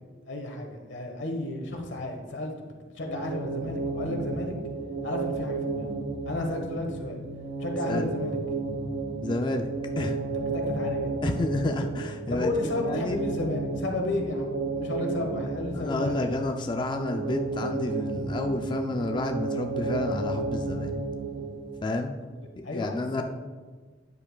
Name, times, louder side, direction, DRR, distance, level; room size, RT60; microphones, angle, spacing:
voice 1, 0.3-4.5 5.0-5.9 6.3-7.2 7.6-8.4 10.3-11.1 12.3-16.3 22.6-23.2, left 2 dB, 90° left, 3 dB, 1.2 m, -32 dB
sound 1, 3.0-21.8, right 3 dB, 70° right, 0.9 m, -32 dB
voice 2, 9.2-9.7 10.0-10.2 11.2-12.5 12.8-13.2 15.8-20.9 21.8-22.1 22.6-23.2, left 2 dB, 25° left, 4 dB, 0.3 m, -30 dB
9.8 x 7.1 x 2.3 m, 1.4 s
head